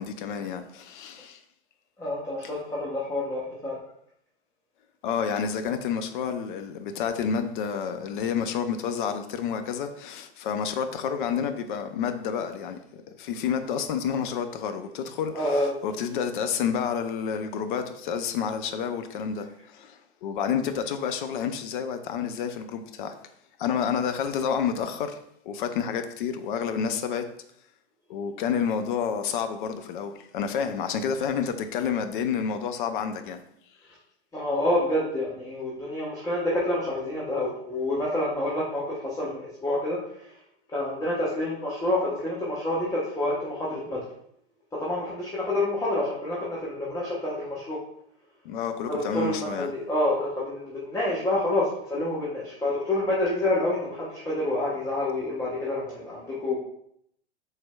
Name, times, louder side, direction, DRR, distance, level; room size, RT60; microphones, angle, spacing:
voice 1, 0.0-1.4 2.4-2.5 5.0-23.2 23.6-25.2 25.4-27.3 28.1-33.4 48.4-49.7, left 7 dB, 50° left, 0.5 m, -29 dB
voice 2, 2.0-3.8 15.2-15.7 34.3-40.0 40.7-44.0 44.8-47.8 48.9-51.6 51.9-56.6, left 1 dB, 10° left, 0.8 m, -28 dB
4.3 x 3.2 x 2.2 m
figure-of-eight pair, 100°, 33 cm